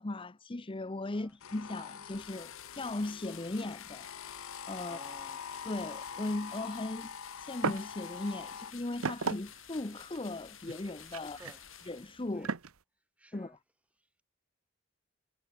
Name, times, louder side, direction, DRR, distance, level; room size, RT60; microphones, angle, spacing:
voice 1, 0.0-4.1 4.3-5.0 5.6-11.4 11.9-12.5 13.3-13.6, left 2 dB, 25° left, 0.7 m, -38 dB
sound 1, 1.4-8.7, left 7 dB, 80° left, 0.9 m, -45 dB
sound 2, 2.0-12.5, left 10 dB, 65° left, 5.5 m, -53 dB
voice 2, 4.8-5.5 6.9-7.0 11.2-12.0 12.3-12.6 13.2-13.6 14.0-14.1, right 1 dB, 5° right, 3.3 m, -55 dB
sound 3, 7.6-7.9 8.2-12.7, right 4 dB, 80° right, 1.0 m, -36 dB
head